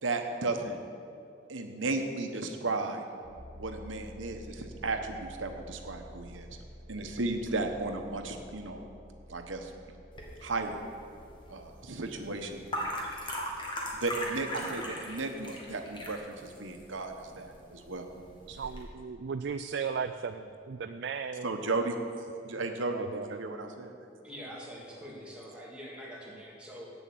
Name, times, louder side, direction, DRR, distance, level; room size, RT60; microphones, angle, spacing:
voice 1, 0.0-0.8 1.5-3.1 3.6-6.5 6.9-8.9 9.3-9.7 10.4-10.8 11.5-12.7 14.0-18.1 21.4-22.0 22.4-23.9, right 3 dB, 85° right, 5 dB, 1.1 m, -34 dB
sound 1, 3.2-18.0, equal, 35° right, 1.4 m, -52 dB
sound 2, 10.1-18.8, equal, 25° left, 1.5 m, -40 dB
voice 2, 18.5-21.5 22.9-23.4, right 6 dB, 60° right, 8 dB, 0.3 m, -36 dB
voice 3, 24.2-26.9, equal, 5° right, -5 dB, 1.9 m, -44 dB
8.3 x 7.2 x 8.4 m, 2.5 s
head